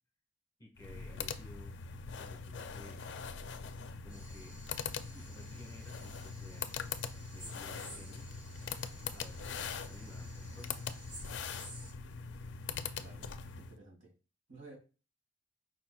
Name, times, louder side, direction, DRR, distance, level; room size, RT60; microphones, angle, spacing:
voice 1, 0.6-1.7 2.0-3.1 4.0-4.6 5.1-6.7 7.3-8.3 9.1-10.8, left 1 dB, 20° left, 0 dB, 1.3 m, -55 dB
sound 1, 0.8-13.8, left 6 dB, 65° left, 0.4 m, -42 dB
sound 2, 4.1-11.9, right 1 dB, 55° right, 2.1 m, -54 dB
voice 2, 12.9-14.1 14.5-14.8, right 2 dB, 75° right, 1 dB, 1.9 m, -54 dB
5.0 x 4.2 x 2.3 m, 0.32 s
head